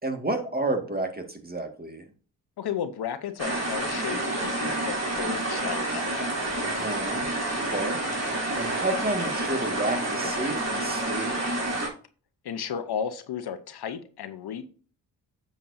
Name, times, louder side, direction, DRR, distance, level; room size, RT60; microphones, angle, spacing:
voice 1, 0.0-2.0 6.6-7.3 7.7-8.0 8.6-11.4, right 2 dB, 20° right, 2.0 m, -30 dB
voice 2, 2.6-6.0 12.4-14.7, left 8 dB, 65° left, 1.0 m, -33 dB
sound 1, 3.4-11.9, right 1 dB, 35° right, 3.8 m, -29 dB
8.6 x 7.0 x 2.7 m
supercardioid pair, 50°, 42 cm